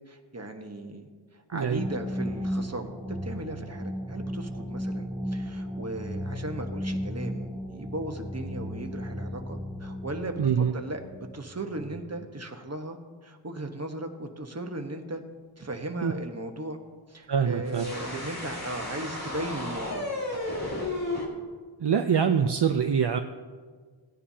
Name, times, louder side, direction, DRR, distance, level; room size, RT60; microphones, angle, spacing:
voice 1, 0.1-10.4 10.7-13.0 13.2-15.2 15.6-16.8 17.1-20.2, right 2 dB, 30° right, 4 dB, 1.2 m, -37 dB
voice 2, 1.5-1.8 10.4-10.7 16.0-16.1 17.3-17.9 21.8-23.2, right 7 dB, 55° right, 7 dB, 0.6 m, -24 dB
sound 1, 1.7-12.0, equal, 10° right, 2.9 m, -35 dB
sound 2, 17.7-21.3, left 2 dB, 45° left, 3.3 m, -33 dB
16.5 x 10.0 x 2.8 m, 1.5 s
wide cardioid pair, 40°, 48 cm